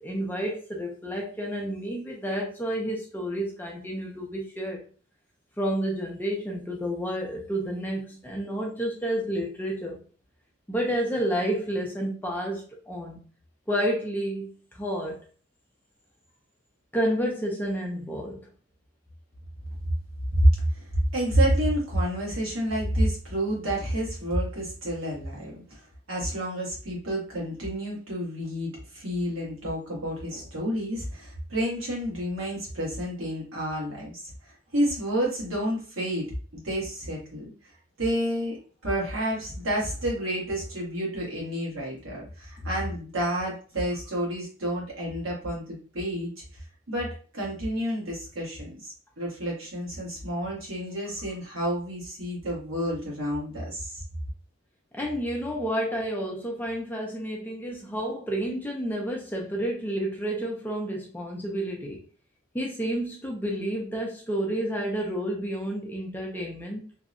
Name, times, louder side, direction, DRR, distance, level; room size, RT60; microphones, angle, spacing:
voice 1, 0.0-4.8 5.6-10.0 10.7-13.2 13.7-15.2 16.9-18.4 54.9-62.0 62.5-66.8, equal, 10° left, -1 dB, 0.4 m, -30 dB
voice 2, 20.7-37.5 38.0-54.0, equal, 75° right, -4 dB, 1.2 m, -29 dB
2.7 x 2.1 x 2.5 m, 0.40 s
head